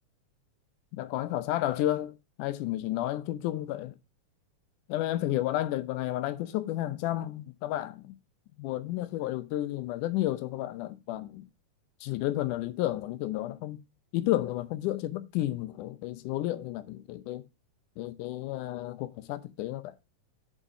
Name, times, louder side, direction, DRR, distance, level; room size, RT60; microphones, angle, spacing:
voice 1, 0.9-3.9 4.9-8.1 8.6-11.5 12.0-13.8 14.1-17.4 18.0-19.9, left 14 dB, 75° left, 2.2 m, -32 dB
6.4 x 5.1 x 6.7 m
omnidirectional pair, 3.8 m